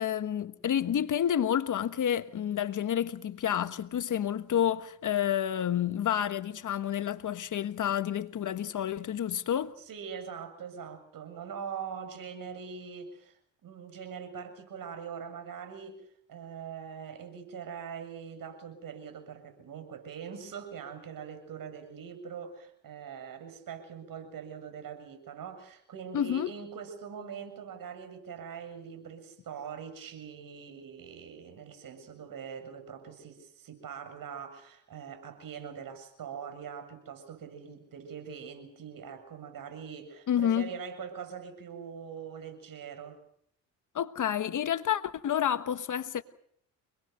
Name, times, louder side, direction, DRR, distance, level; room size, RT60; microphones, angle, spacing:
voice 1, 0.0-9.7 26.1-26.5 40.3-40.7 43.9-46.2, left 10 dB, 50° left, 1.4 m, -29 dB
voice 2, 9.8-16.0 16.3-43.2, right 7 dB, 55° right, 7.3 m, -42 dB
29.0 x 21.0 x 6.8 m
supercardioid pair, 65°, 39 cm